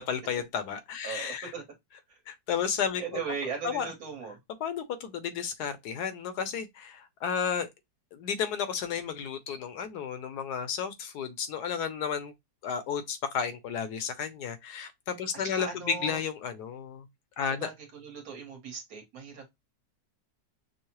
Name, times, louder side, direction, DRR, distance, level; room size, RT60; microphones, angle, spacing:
voice 1, 0.0-1.5 2.3-3.0 3.6-3.9 4.6-7.7 8.1-12.3 12.6-17.0 17.4-17.7, left 7 dB, 70° left, 1.1 m, -32 dB
voice 2, 1.0-1.6 2.1-2.2 3.0-4.4 15.3-16.2 17.5-19.6, right 5 dB, 55° right, 1.4 m, -38 dB
5.4 x 2.0 x 2.9 m
omnidirectional pair, 1.9 m